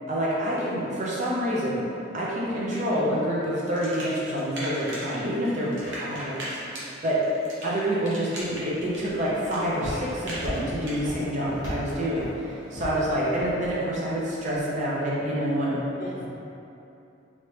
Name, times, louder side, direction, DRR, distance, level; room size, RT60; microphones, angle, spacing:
voice 1, 0.1-1.8 2.1-6.5 7.0-7.2 7.6-15.8, equal, 40° right, -6 dB, 0.5 m, -27 dB
sound 1, 3.8-5.2 5.4-11.0, right 1 dB, 75° right, 0.8 m, -38 dB
Walk footsteps, 8.4-14.6, equal, 20° right, 1.3 m, -39 dB
voice 2, 16.0-16.3, left 1 dB, 45° left, -4 dB, 0.5 m, -40 dB
3.1 x 2.8 x 3.1 m, 2.8 s
head